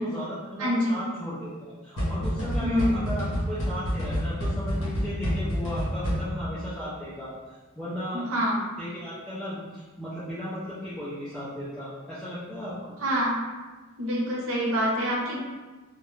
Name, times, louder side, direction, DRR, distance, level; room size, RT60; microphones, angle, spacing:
voice 1, 0.0-7.3 7.8-8.3 8.8-12.7, equal, 5° left, -13 dB, 0.4 m, -36 dB
voice 2, 0.6-1.0 2.6-2.9 8.1-8.6 13.0-13.4 14.0-15.4, equal, 75° right, -4 dB, 0.6 m, -26 dB
sound 1, 2.0-6.6, equal, 70° left, 0.9 m, -29 dB
2.3 x 2.1 x 3.1 m, 1.3 s
head